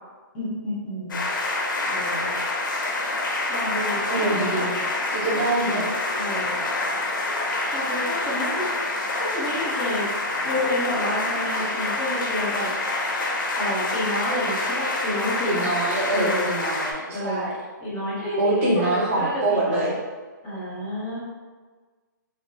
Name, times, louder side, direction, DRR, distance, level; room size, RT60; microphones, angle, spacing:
voice 1, 0.3-1.2 1.9-2.3 3.5-4.6 5.3-5.8 6.2-6.6 7.7-8.7 9.1-10.1 10.4-12.7 13.6-16.5 17.1-17.5 17.8-19.9 20.4-21.2, left 1 dB, 15° left, -8 dB, 0.6 m, -30 dB
sound 1, 1.1-16.9, left 2 dB, 80° left, 0.5 m, -27 dB
voice 2, 4.1-4.7 5.1-5.9 15.4-17.5 18.4-20.0, right 2 dB, 35° right, -4 dB, 0.7 m, -24 dB
3.1 x 2.1 x 2.2 m, 1.4 s
hypercardioid pair, 160°, 11 cm